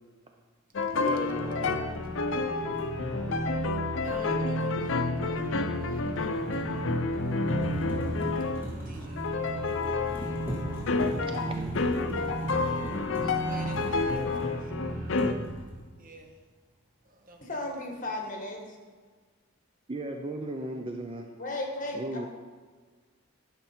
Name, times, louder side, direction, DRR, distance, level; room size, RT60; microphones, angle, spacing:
sound 1, 0.7-8.7 9.2-15.3, left 4 dB, 65° left, 0.5 m, -30 dB
sound 2, 0.8-15.6, right 2 dB, 15° left, 2.4 m, -36 dB
voice 1, 1.0-1.8 11.3-11.9 19.9-21.3 21.9-22.3, right 1 dB, 25° right, 3 dB, 0.5 m, -36 dB
sound 3, 2.8-2.9 6.0-14.8 15.1-15.9, right 1 dB, 10° right, 1.5 m, -41 dB
voice 2, 4.0-7.4 7.8-7.9 8.5-9.4 13.2-14.7 15.2-15.6 16.0-16.4 17.0-17.4, right 2 dB, 45° right, 3 dB, 1.0 m, -52 dB
voice 3, 17.4-18.6 21.4-22.3, left 2 dB, 40° left, 2 dB, 1.3 m, -35 dB
10.5 x 5.8 x 4.4 m, 1.5 s
head